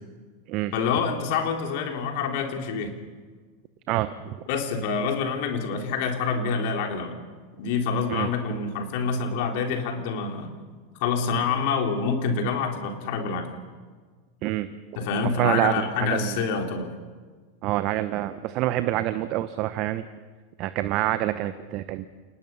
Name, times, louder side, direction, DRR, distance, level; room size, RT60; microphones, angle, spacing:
voice 1, 0.7-2.9 4.5-7.2 7.6-10.5 11.0-13.6 15.0-16.9, left 5 dB, 60° left, 3 dB, 3.8 m, -27 dB
voice 2, 3.9-4.3 8.1-8.3 14.4-14.7 14.9-16.4 17.6-20.1 20.6-22.1, right 14 dB, 50° right, 12 dB, 1.0 m, -27 dB
29.0 x 19.5 x 5.7 m, 1.5 s
hypercardioid pair, 90°, 0 cm